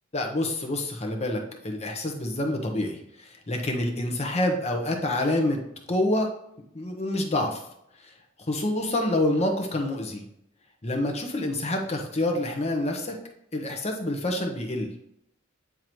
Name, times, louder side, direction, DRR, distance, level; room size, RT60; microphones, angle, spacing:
voice 1, 0.1-5.6 5.9-6.3 6.7-7.6 8.0-8.1 8.5-10.3 10.8-13.1 13.5-14.9, left 1 dB, 30° left, 2 dB, 0.9 m, -27 dB
8.9 x 3.7 x 3.1 m, 0.77 s
head